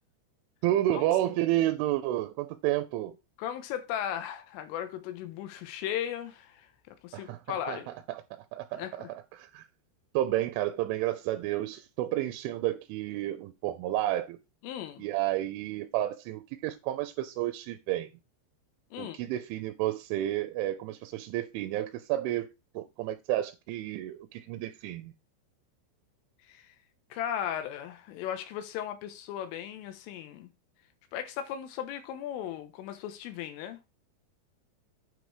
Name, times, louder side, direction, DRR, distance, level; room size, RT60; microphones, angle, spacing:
voice 1, 0.6-3.2 7.1-9.1 9.3-9.7 10.1-14.4 15.0-18.1 19.0-22.5 22.8-25.1, right 14 dB, 80° right, 3.0 m, -31 dB
voice 2, 3.4-6.7 7.0-7.9 8.7-9.1 14.6-15.0 18.9-19.2 26.5-26.7 27.1-30.5 31.1-33.8, left 10 dB, 90° left, 3.7 m, -36 dB
8.5 x 5.3 x 4.9 m
omnidirectional pair, 5.7 m